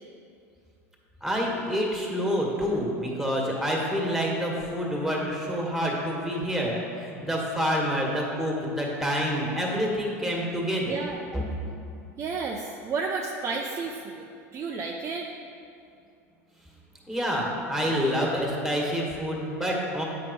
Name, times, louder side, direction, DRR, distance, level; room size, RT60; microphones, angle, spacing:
voice 1, 1.2-11.0 11.3-11.4 17.1-20.0, equal, 5° right, -2 dB, 1.7 m, -27 dB
voice 2, 10.9-11.2 12.2-14.3 14.5-15.3, right 4 dB, 35° right, 1 dB, 0.6 m, -32 dB
8.4 x 5.2 x 4.2 m, 2.5 s
hypercardioid pair, 95°, 8 cm